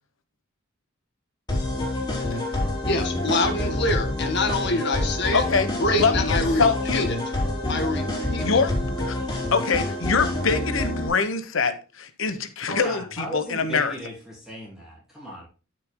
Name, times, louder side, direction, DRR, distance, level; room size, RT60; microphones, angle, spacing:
sound 1, 1.5-11.1, left 1 dB, 20° left, 3.9 m, -27 dB
voice 1, 2.8-5.4 5.8-6.7 6.9-7.1 7.7-8.4, left 2 dB, 60° left, 5 dB, 1.9 m, -25 dB
voice 2, 5.3-5.7 6.0-7.1 8.4-9.2 9.5-13.9, left 4 dB, 85° left, 10 dB, 1.1 m, -24 dB
voice 3, 12.7-15.5, equal, ahead, -6 dB, 3.2 m, -36 dB
13.0 x 6.6 x 2.2 m, 0.31 s
head